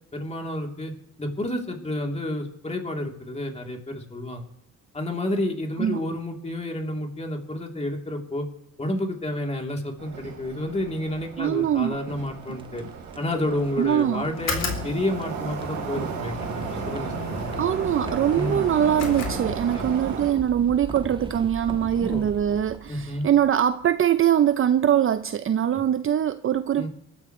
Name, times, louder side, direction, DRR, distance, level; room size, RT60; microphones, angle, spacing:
voice 1, 0.1-0.9 1.2-4.4 4.9-8.4 8.8-12.8 13.1-17.4 18.3-18.6 19.7-19.9 22.0-22.2 22.9-23.3 25.7-25.8 26.8-26.9, left 1 dB, 20° left, 3.2 m, -30 dB
Subway metro underground, 10.0-20.3, right 7 dB, 85° right, 3.3 m, -35 dB
voice 2, 11.4-12.0 13.8-14.3 17.6-26.9, right 10 dB, 45° right, 0.6 m, -22 dB
sound 1, 12.2-24.3, right 3 dB, 15° right, 1.5 m, -41 dB
sound 2, 14.3-20.0, left 4 dB, 60° left, 3.9 m, -34 dB
25.0 x 13.0 x 3.2 m
cardioid pair, 90°, 30 cm